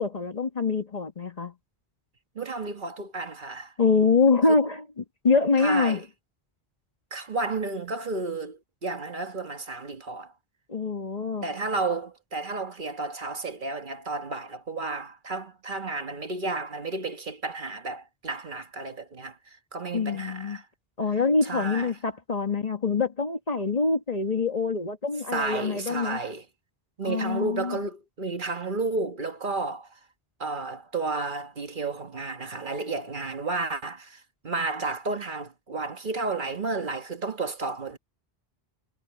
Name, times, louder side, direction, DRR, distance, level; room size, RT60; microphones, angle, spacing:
voice 1, 0.0-1.5 3.8-6.0 10.7-11.4 19.9-20.6 21.0-26.2 27.0-27.8, left 4 dB, 40° left, 1.4 m, -25 dB
voice 2, 2.3-3.7 5.6-6.0 7.1-10.3 11.4-20.7 21.4-22.0 25.3-26.4 27.0-30.0 30.4-38.0, right 3 dB, 55° right, 1.5 m, -32 dB
omnidirectional pair, 1.0 m